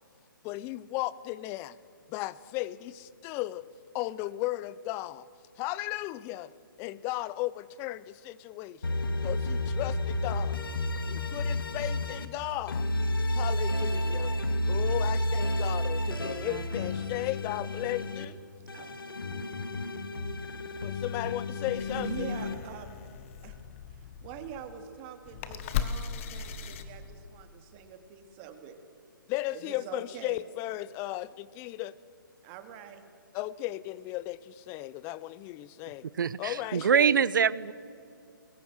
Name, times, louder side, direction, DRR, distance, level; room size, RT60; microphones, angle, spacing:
voice 1, 0.4-1.8 2.1-3.6 3.9-5.2 5.6-6.5 6.8-9.0 9.2-10.6 11.1-12.8 13.3-14.3 14.6-18.4 20.8-22.3 29.3-31.9 33.3-36.1 36.4-37.2, left 16 dB, 20° left, 19 dB, 0.6 m, -35 dB
sound 1, 8.8-12.3 12.7-18.2 18.7-22.5, left 1 dB, 85° left, 2.1 m, -31 dB
voice 2, 16.3-16.9 18.7-19.0 21.9-23.0 23.4-23.5 23.9-28.8 29.5-30.4 32.4-33.0, right 8 dB, 30° right, 7 dB, 2.3 m, -44 dB
sound 2, 21.7-27.4, left 8 dB, 35° left, 1.5 m, -38 dB
voice 3, 36.1-37.7, right 7 dB, 65° right, 20 dB, 0.7 m, -24 dB
28.0 x 21.5 x 6.3 m, 2.5 s
hypercardioid pair, 140°, 11 cm